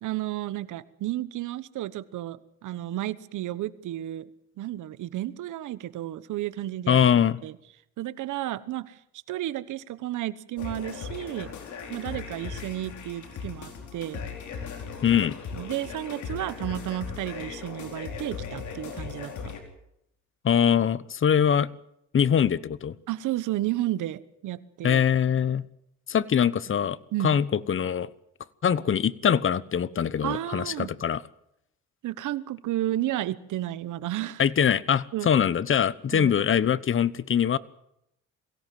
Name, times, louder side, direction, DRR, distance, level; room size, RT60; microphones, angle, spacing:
voice 1, 0.0-4.3 4.6-7.0 7.4-7.6 8.0-9.0 9.3-11.5 11.9-14.2 15.5-19.6 23.1-25.0 27.1-27.3 30.2-30.9 32.0-34.4 35.1-35.3 36.1-36.3, right 14 dB, 80° right, 16 dB, 1.2 m, -32 dB
voice 2, 6.9-7.4 15.0-15.4 20.4-21.7 22.1-22.9 24.8-25.6 26.1-27.0 27.2-28.1 28.6-31.2 34.4-37.6, left 8 dB, 45° left, 19 dB, 1.0 m, -23 dB
sound 1, 10.6-19.6, left 6 dB, 75° left, 4.6 m, -38 dB
22.5 x 17.0 x 7.7 m, 0.79 s
cardioid pair, 90°, 30 cm